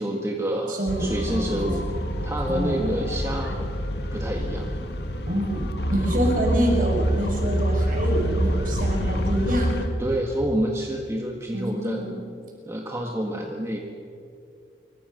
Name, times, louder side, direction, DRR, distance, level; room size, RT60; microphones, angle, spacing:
voice 1, 0.0-3.7 4.1-4.7 10.0-12.0 12.7-13.8, right 1 dB, 15° right, 0 dB, 1.8 m, -28 dB
voice 2, 0.7-1.0 1.3-1.6 2.5-2.8 5.3-5.6 5.9-9.8 11.5-12.2, equal, 45° right, 1 dB, 6.6 m, -26 dB
sound 1, 0.9-9.9, equal, 60° left, 2.2 m, -26 dB
26.0 x 24.5 x 6.8 m, 2.5 s
head